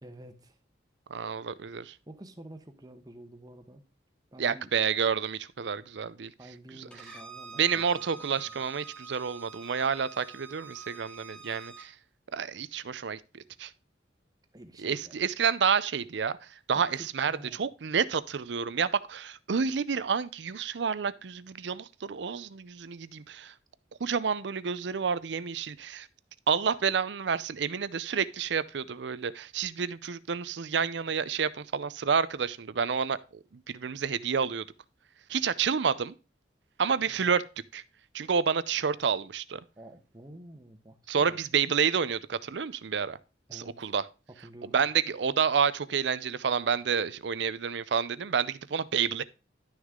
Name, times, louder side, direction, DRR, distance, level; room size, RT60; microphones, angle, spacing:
voice 1, 0.0-0.6 2.1-3.8 4.3-4.7 6.4-8.0 8.3-8.6 14.5-15.2 16.7-17.6 37.1-37.3 39.8-41.4 43.5-43.9 44.4-44.8, right 1 dB, 20° right, 1.1 m, -49 dB
voice 2, 1.1-2.0 4.4-6.3 7.6-11.9 12.3-13.7 14.8-16.4 16.7-23.5 24.0-26.1 26.5-33.2 33.5-34.6 35.3-36.1 36.8-37.4 37.7-37.8 38.1-39.6 41.1-43.2 43.5-44.0 44.7-49.2, right 6 dB, 70° right, 0.5 m, -29 dB
Bowed string instrument, 6.9-11.9, right 5 dB, 5° left, 1.5 m, -47 dB
11.5 x 6.3 x 3.7 m
head